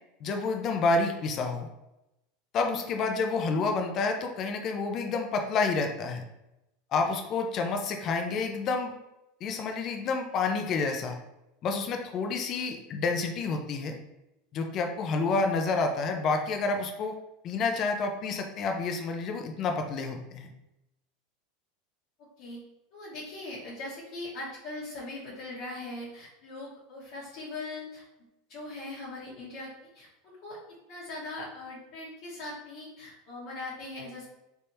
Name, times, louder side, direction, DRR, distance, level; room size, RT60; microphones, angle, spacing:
voice 1, 0.2-1.7 2.5-6.2 6.9-8.9 9.4-11.2 11.6-14.0 14.5-17.2 17.4-20.5, left 4 dB, 40° left, 4 dB, 0.5 m, -29 dB
voice 2, 2.6-2.9 22.4-22.6 22.9-28.0 28.5-30.6 30.9-34.2, left 2 dB, 60° left, -9 dB, 1.2 m, -40 dB
3.4 x 3.3 x 2.8 m, 0.90 s
supercardioid pair, 130°, 0 cm